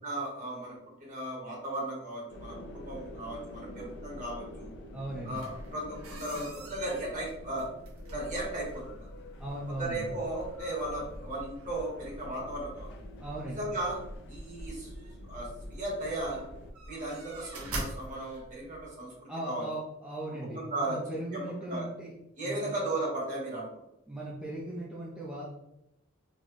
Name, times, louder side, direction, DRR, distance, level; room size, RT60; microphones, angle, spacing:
voice 1, 0.0-4.7 5.2-7.7 8.1-9.1 9.7-12.9 13.6-14.0 14.3-14.9 15.3-16.4 16.9-19.6 20.4-21.0 21.3-21.9 22.4-23.7, right 1 dB, 35° right, -3 dB, 1.2 m, -36 dB
sound 1, 2.3-16.7, left 1 dB, 55° left, 0.5 m, -47 dB
voice 2, 4.9-5.4 9.4-10.1 13.2-13.6 19.3-22.1 22.4-22.7 24.1-25.5, right 1 dB, 5° right, -6 dB, 0.4 m, -38 dB
sound 2, 5.3-18.9, right 1 dB, 85° right, 0.7 m, -46 dB
3.9 x 2.1 x 3.1 m, 0.84 s
head